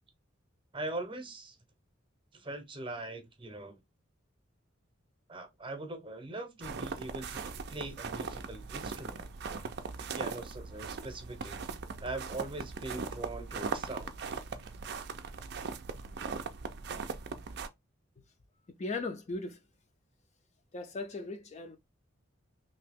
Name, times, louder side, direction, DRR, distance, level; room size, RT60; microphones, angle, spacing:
voice 1, 0.7-1.6 2.3-3.8 5.3-7.4 7.7-9.3 10.0-11.6 12.0-14.1, right 2 dB, 25° right, 0.7 m, -41 dB
sound 1, 6.6-17.7, right 5 dB, 55° right, 0.4 m, -39 dB
voice 2, 18.8-19.6 20.7-21.8, left 3 dB, 35° left, 0.4 m, -37 dB
2.9 x 2.7 x 3.4 m
head